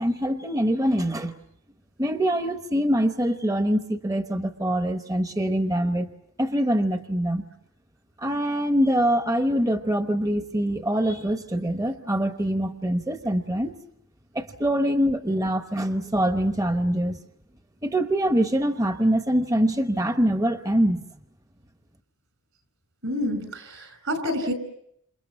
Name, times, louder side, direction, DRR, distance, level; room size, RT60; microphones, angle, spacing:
voice 1, 0.0-1.4 2.0-6.1 6.4-7.4 8.2-13.8 14.3-17.2 17.8-21.0, equal, 15° right, 7 dB, 0.9 m, -24 dB
voice 2, 23.0-24.5, left 1 dB, 70° right, 11 dB, 5.3 m, -28 dB
28.5 x 28.0 x 6.0 m, 0.73 s
head